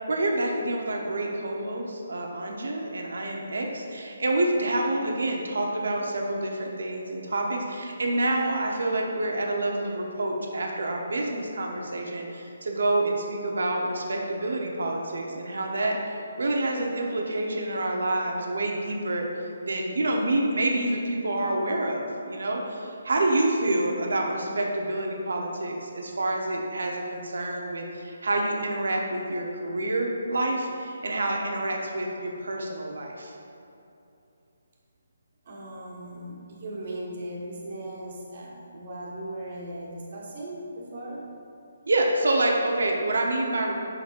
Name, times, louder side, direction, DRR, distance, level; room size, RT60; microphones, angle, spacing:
voice 1, 0.1-19.3 19.6-33.3 41.9-43.7, right 1 dB, 80° right, 0 dB, 0.9 m, -27 dB
voice 2, 35.4-41.2, right 1 dB, 45° right, -3 dB, 1.4 m, -38 dB
6.9 x 6.8 x 2.6 m, 2.8 s
hypercardioid pair, 165°, 0 cm